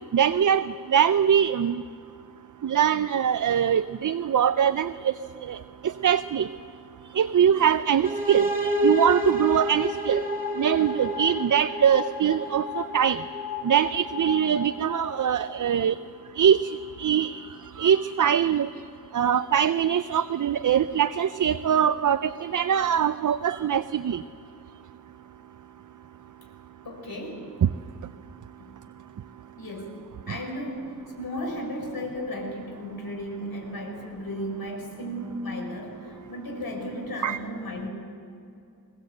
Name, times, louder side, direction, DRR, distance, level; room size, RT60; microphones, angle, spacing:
voice 1, 0.1-1.8 2.6-5.1 5.5-5.6 5.8-6.5 7.2-10.2 10.6-13.2 13.6-15.9 16.4-16.6 17.0-17.4 17.8-18.7 19.1-24.2 37.2-37.4, right 8 dB, 60° right, 12 dB, 0.6 m, -22 dB
sound 1, 8.0-15.7, equal, 25° right, 2.2 m, -30 dB
voice 2, 26.8-27.5 28.6-28.8 29.6-37.9, equal, 90° left, 1 dB, 4.8 m, -35 dB
22.5 x 20.5 x 7.8 m, 2.6 s
wide cardioid pair, 80°, 35 cm